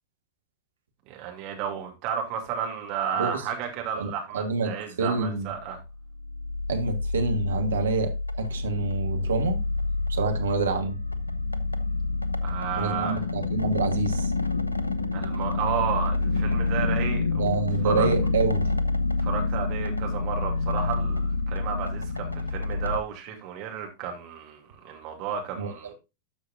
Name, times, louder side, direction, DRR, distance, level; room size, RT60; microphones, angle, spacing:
voice 1, 1.1-5.8 12.4-13.2 15.1-18.1 19.2-25.9, right 7 dB, 40° right, 2.6 m, -32 dB
voice 2, 3.9-4.7 5.0-5.5 6.7-9.6 10.1-11.0 12.8-14.3 17.4-18.6 25.6-25.7, right 4 dB, 70° right, 1.5 m, -28 dB
sound 1, 5.7-23.0, left 3 dB, 85° left, 0.7 m, -27 dB
12.5 x 6.3 x 2.6 m
figure-of-eight pair, 90°, 0 cm